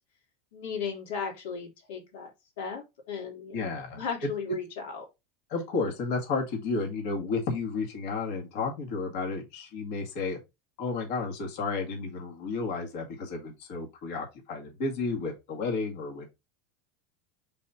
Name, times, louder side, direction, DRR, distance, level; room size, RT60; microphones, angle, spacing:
voice 1, 0.5-2.3 2.6-5.1, left 6 dB, 70° left, 2.9 m, -36 dB
voice 2, 3.5-4.0 5.5-10.4 10.8-16.3, left 4 dB, 50° left, 2.1 m, -32 dB
5.4 x 4.3 x 4.2 m
supercardioid pair, 175°, 0 cm